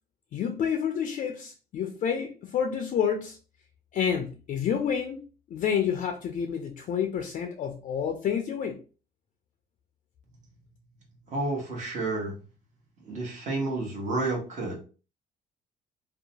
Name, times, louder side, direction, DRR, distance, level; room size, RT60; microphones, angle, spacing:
voice 1, 0.3-3.4 3.9-5.2 5.5-8.8, left 8 dB, 50° left, 0.4 m, -29 dB
voice 2, 11.3-12.4 13.0-14.8, right 2 dB, 45° right, 1.1 m, -30 dB
2.6 x 2.1 x 2.8 m
cardioid pair, 110°, 17 cm